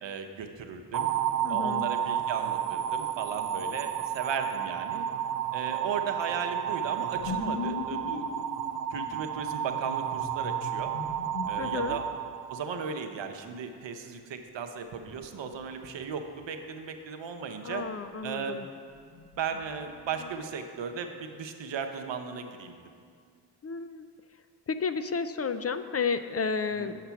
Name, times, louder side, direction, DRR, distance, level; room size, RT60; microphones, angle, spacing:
voice 1, 0.0-1.1 1.5-5.1 5.5-8.2 8.9-11.0 11.5-12.0 12.5-17.9 18.2-18.6 19.4-22.8 26.8-26.9, right 6 dB, 80° right, 6 dB, 0.8 m, -36 dB
sound 1, 0.9-13.1, right 10 dB, 45° right, 0.5 m, -32 dB
voice 2, 1.4-1.9 11.6-12.0 17.6-18.7 23.6-24.1 24.7-27.0, left 5 dB, 35° left, 10 dB, 0.5 m, -32 dB
sound 2, 7.1-12.3 15.0-16.5 18.9-20.3, left 5 dB, 65° left, 0.7 m, -41 dB
8.2 x 5.8 x 5.7 m, 2.2 s
cardioid pair, 45°, 44 cm